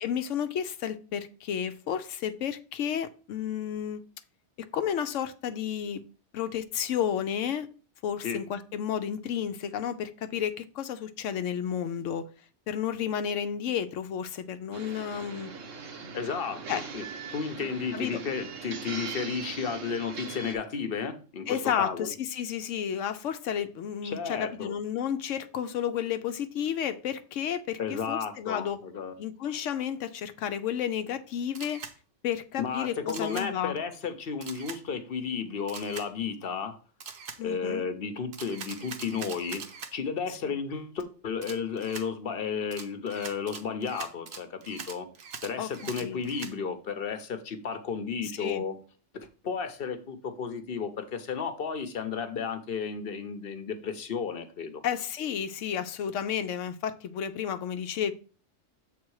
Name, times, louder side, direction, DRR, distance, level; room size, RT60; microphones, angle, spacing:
voice 1, 0.0-4.0 4.7-6.0 6.3-7.7 8.0-12.3 12.7-15.5 16.7-16.8 17.9-18.2 21.5-28.8 29.2-31.8 32.2-33.8 37.4-37.8 40.4-40.5 45.6-46.2 48.2-48.6 54.8-58.1, left 9 dB, 80° left, 0.9 m, -32 dB
sound 1, 14.7-20.5, right 5 dB, 80° right, 1.3 m, -40 dB
voice 2, 16.1-22.1 24.0-24.7 27.8-29.1 32.6-36.8 37.4-39.6 39.9-45.1 45.4-48.8 49.1-54.8, left 6 dB, 50° left, 1.0 m, -33 dB
Camera, 31.5-31.9 33.1-33.5 34.4-34.8 35.7-36.1 37.0-37.4 38.3-39.9 41.4-42.1 42.7-46.5, right 6 dB, 60° right, 1.0 m, -42 dB
7.4 x 3.7 x 4.7 m
omnidirectional pair, 1.3 m